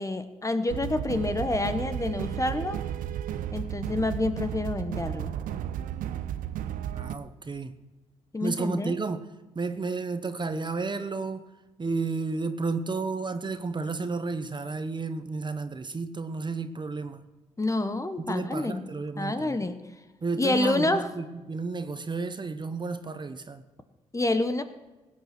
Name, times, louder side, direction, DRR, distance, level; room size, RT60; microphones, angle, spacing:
voice 1, 0.0-2.8 3.5-5.4 8.3-8.9 17.6-18.8 19.2-19.8 20.4-21.1 24.1-24.6, left 2 dB, 20° left, 1.3 m, -28 dB
sound 1, 0.7-7.1, right 10 dB, 75° right, 0.7 m, -33 dB
voice 2, 6.9-7.7 8.4-9.3 9.5-11.5 11.8-17.2 18.3-19.7 20.2-23.6, right 4 dB, 35° right, 1.1 m, -32 dB
16.5 x 8.6 x 6.1 m
supercardioid pair, 50°, 14 cm